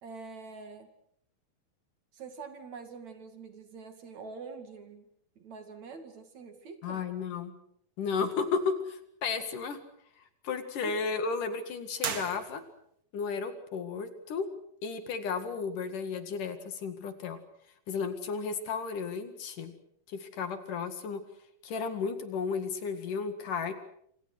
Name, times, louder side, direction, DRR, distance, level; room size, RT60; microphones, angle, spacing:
voice 1, 0.0-0.9 2.1-5.1 5.4-7.0 10.8-11.0, right 4 dB, 50° right, 7 dB, 3.4 m, -45 dB
voice 2, 6.8-7.5 8.0-9.8 10.4-12.6 13.1-14.5 14.8-17.4 17.9-19.7 20.1-21.2 21.6-23.7, left 5 dB, 60° left, 9 dB, 3.4 m, -33 dB
sound 1, 12.0-13.0, right 6 dB, 85° right, 0.8 m, -37 dB
27.0 x 27.0 x 6.3 m, 0.68 s
omnidirectional pair, 4.3 m